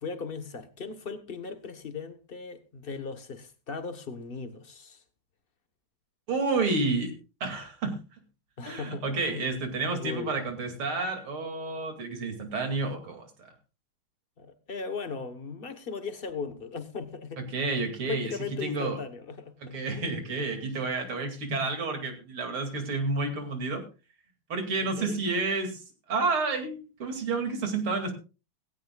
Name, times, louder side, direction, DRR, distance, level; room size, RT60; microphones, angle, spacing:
voice 1, 0.0-5.0 8.6-9.5 9.9-10.3 14.4-17.4 18.1-20.2 25.0-25.2, left 5 dB, 35° left, 1.1 m, -38 dB
voice 2, 6.3-7.1 7.4-8.0 8.6-13.5 17.5-18.3 18.6-19.0 19.6-23.8 24.5-28.1, right 3 dB, 85° right, 3.4 m, -30 dB
17.5 x 16.5 x 2.4 m
omnidirectional pair, 2.3 m